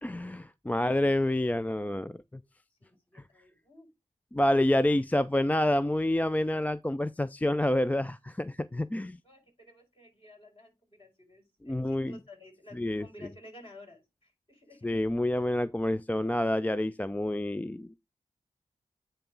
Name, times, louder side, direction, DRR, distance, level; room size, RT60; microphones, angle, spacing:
voice 1, 0.0-2.2 3.1-3.2 4.3-9.2 11.7-12.2 12.8-13.1 14.8-18.0, left 1 dB, 10° left, 0.3 m, -28 dB
voice 2, 0.7-1.0 2.7-3.9 9.2-14.9, left 1 dB, 40° left, 4.4 m, -54 dB
8.9 x 3.0 x 5.2 m
cardioid pair, 50°, 13 cm